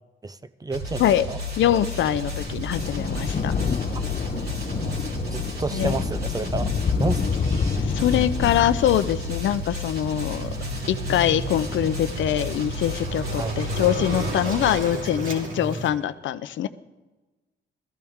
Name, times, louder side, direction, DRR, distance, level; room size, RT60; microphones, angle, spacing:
voice 1, 0.2-1.0 1.3-1.4 4.7-5.0 5.2-6.7 7.0-7.2 13.4-13.6, right 3 dB, 20° right, 13 dB, 0.6 m, -30 dB
sound 1, 0.7-14.8, left 1 dB, 55° right, 2.7 m, -33 dB
voice 2, 1.6-3.5 5.7-5.9 7.8-10.5 10.9-16.7, left 11 dB, 70° left, 12 dB, 0.7 m, -23 dB
Thunder, 1.7-14.5 15.4-15.5, left 5 dB, 35° left, 0.8 m, -29 dB
Waves surf, 10.1-15.9, right 3 dB, 75° right, 2.9 m, -33 dB
18.0 x 14.0 x 3.7 m, 1.2 s
cardioid pair, 90°, 20 cm